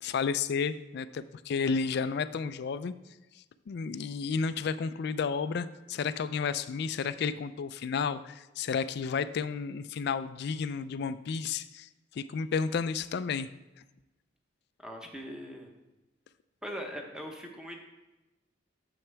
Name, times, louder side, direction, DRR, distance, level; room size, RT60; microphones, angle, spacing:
voice 1, 0.0-2.9 3.7-13.5, left 5 dB, 60° left, 14 dB, 0.3 m, -32 dB
voice 2, 14.8-15.7 16.6-17.8, equal, 5° right, 2 dB, 0.9 m, -41 dB
8.8 x 7.1 x 3.3 m, 1.0 s
head